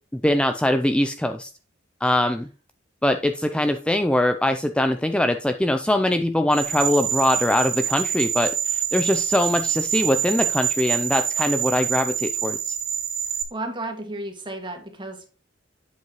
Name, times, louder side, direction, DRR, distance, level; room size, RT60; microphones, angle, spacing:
voice 1, 0.1-1.5 2.0-2.5 3.0-12.8, left 1 dB, 5° left, 7 dB, 0.4 m, -22 dB
sound 1, 6.5-13.4, right 9 dB, 55° right, 2.6 m, -26 dB
voice 2, 13.5-15.3, right 2 dB, 25° right, 4 dB, 2.0 m, -33 dB
8.2 x 7.6 x 3.1 m, 0.34 s
head